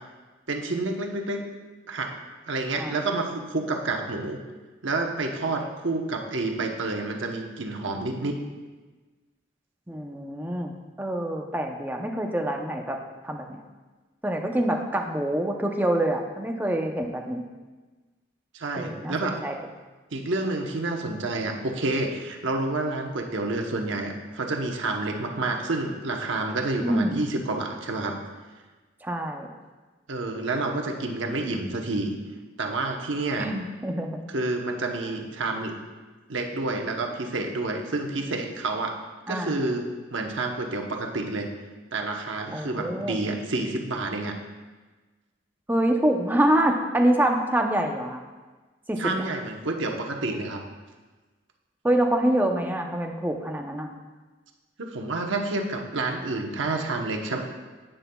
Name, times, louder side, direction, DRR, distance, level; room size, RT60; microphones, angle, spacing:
voice 1, 0.5-1.4 1.9-2.1 2.5-4.4 4.8-8.4 18.5-19.4 20.1-28.2 30.1-32.1 32.6-33.5 34.3-35.7 36.3-39.0 39.3-41.5 41.9-44.4 49.0-50.6 54.8-57.4, right 2 dB, 80° right, 2 dB, 1.0 m, -29 dB
voice 2, 9.9-10.7 11.0-13.0 13.2-13.6 14.2-17.4 18.7-19.6 26.8-27.2 29.0-29.5 33.4-34.2 39.3-39.6 42.5-43.2 45.7-48.2 48.9-49.0 51.8-53.9, right 1 dB, 10° right, 2 dB, 0.6 m, -26 dB
10.5 x 9.1 x 2.3 m, 1.3 s
head